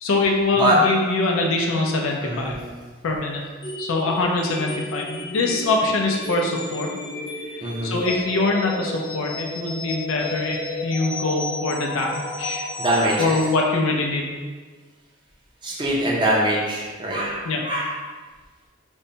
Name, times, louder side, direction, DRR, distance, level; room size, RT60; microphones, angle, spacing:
voice 1, 0.0-2.6 3.0-3.4 3.8-6.9 7.5-12.7 13.2-14.3 17.4-17.7, left 3 dB, 70° left, 0 dB, 0.4 m, -23 dB
voice 2, 2.2-2.6 7.6-7.9 12.8-13.4 15.6-17.9, right 1 dB, 20° right, -4 dB, 0.6 m, -23 dB
sound 1, 3.6-13.5, left 1 dB, 25° left, 0.6 m, -33 dB
5.2 x 2.1 x 2.7 m, 1.4 s
head